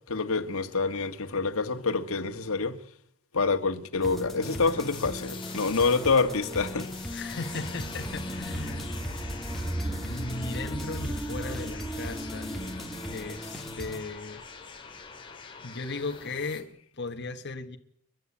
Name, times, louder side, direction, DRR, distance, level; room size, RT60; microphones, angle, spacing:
voice 1, 0.1-2.8 3.3-6.9, left 4 dB, 80° left, 1.6 m, -27 dB
sound 1, 4.0-14.0, equal, ahead, 2.5 m, -39 dB
sound 2, 4.4-16.6, left 5 dB, 25° left, 3.0 m, -44 dB
sound 3, 6.3-14.8, right 1 dB, 15° right, 1.4 m, -38 dB
voice 2, 7.1-8.8 9.1-9.3 9.9-12.5 13.1-14.4 15.6-17.8, left 3 dB, 55° left, 1.4 m, -37 dB
30.0 x 12.0 x 8.6 m
head